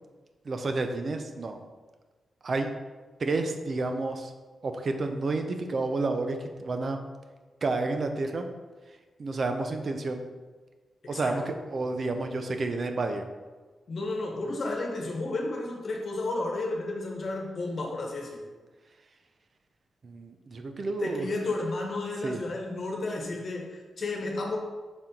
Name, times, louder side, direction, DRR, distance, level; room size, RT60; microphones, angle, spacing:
voice 1, 0.4-1.6 2.4-2.7 3.2-4.3 4.6-7.0 7.6-8.4 9.2-10.2 11.1-13.2 20.0-21.3 22.2-22.4, right 3 dB, 50° right, 6 dB, 0.7 m, -30 dB
voice 2, 11.0-11.3 13.9-18.4 21.0-24.6, left 2 dB, 55° left, 0 dB, 1.2 m, -32 dB
6.1 x 4.3 x 3.9 m, 1.3 s
cardioid pair, 90°, 0 cm